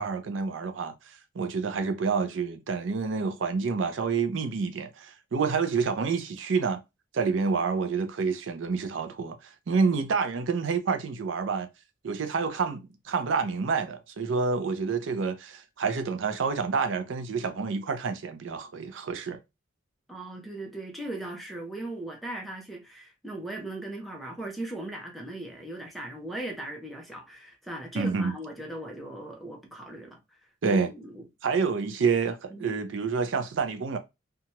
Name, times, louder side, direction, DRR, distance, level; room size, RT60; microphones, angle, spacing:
voice 1, 0.0-6.8 7.1-9.4 9.7-11.7 12.0-19.4 28.0-28.4 30.6-30.9 31.4-34.0, right 5 dB, 75° right, 0.5 m, -28 dB
voice 2, 20.1-30.2 30.6-31.2 32.5-32.8, right 1 dB, ahead, 0.7 m, -38 dB
2.8 x 2.3 x 2.8 m
head